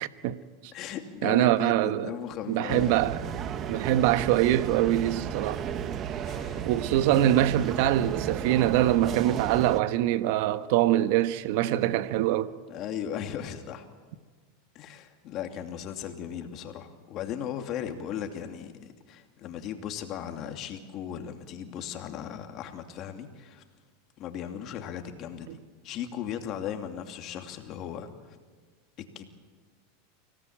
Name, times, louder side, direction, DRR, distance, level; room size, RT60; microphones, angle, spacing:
voice 1, 0.7-3.0 6.2-6.6 12.7-13.9 14.7-18.7 19.1-23.6 24.2-25.6 25.8-28.1 29.1-29.2, left 9 dB, 45° left, 2.7 m, -37 dB
voice 2, 1.2-2.1 2.5-3.2 3.7-5.6 6.6-12.5 25.5-25.6, right 13 dB, 65° right, 1.1 m, -24 dB
sound 1, 2.7-9.8, right 8 dB, 35° right, 1.4 m, -34 dB
25.0 x 18.0 x 8.8 m
supercardioid pair, 120°, 0 cm